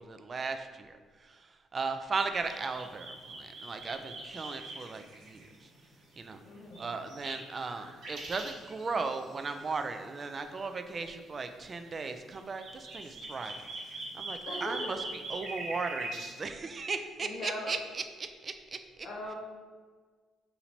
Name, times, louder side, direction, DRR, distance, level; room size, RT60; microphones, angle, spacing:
voice 1, 0.0-5.7 6.2-6.4 6.8-13.6 13.9-18.8, right 4 dB, 40° right, 7 dB, 0.3 m, -37 dB
sound 1, 2.4-5.8 6.1-6.2 6.7-9.8 10.1-10.4 11.0-11.3 11.8-11.9 12.3-16.4, right 2 dB, 75° right, 1.1 m, -42 dB
voice 2, 6.4-6.9 14.5-14.9 17.2-17.7 19.0-19.3, left 1 dB, 75° left, -2 dB, 0.9 m, -39 dB
2.8 x 2.7 x 4.3 m, 1.5 s
cardioid pair, 90°, 0 cm